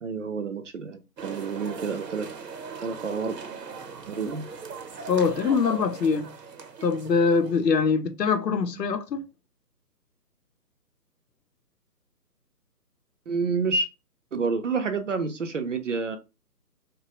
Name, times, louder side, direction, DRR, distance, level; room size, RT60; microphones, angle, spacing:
voice 1, 0.0-2.3 2.8-3.3 4.1-4.4 13.3-13.9 14.3-16.2, right 4 dB, 50° right, 0.5 m, -29 dB
sound 1, 1.2-7.7, right 5 dB, 80° right, 0.9 m, -40 dB
voice 2, 5.1-6.3 6.8-9.2, left 5 dB, 85° left, 0.7 m, -23 dB
2.9 x 2.2 x 2.9 m
hypercardioid pair, 160°, 48 cm